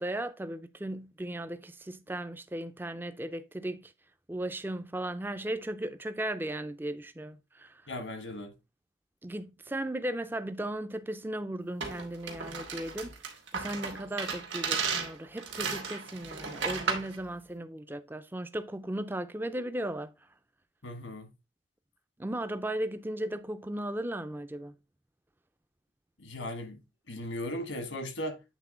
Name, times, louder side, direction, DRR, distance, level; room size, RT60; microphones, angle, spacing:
voice 1, 0.0-3.9 4.3-7.8 9.2-13.1 13.5-20.1 22.2-24.7, right 1 dB, 10° right, 0.4 m, -36 dB
voice 2, 7.9-8.5 20.8-21.3 26.2-26.8 27.1-28.4, left 1 dB, 85° left, 1.4 m, -37 dB
sound 1, 11.8-17.1, right 5 dB, 75° right, 1.6 m, -34 dB
8.2 x 3.7 x 3.7 m
head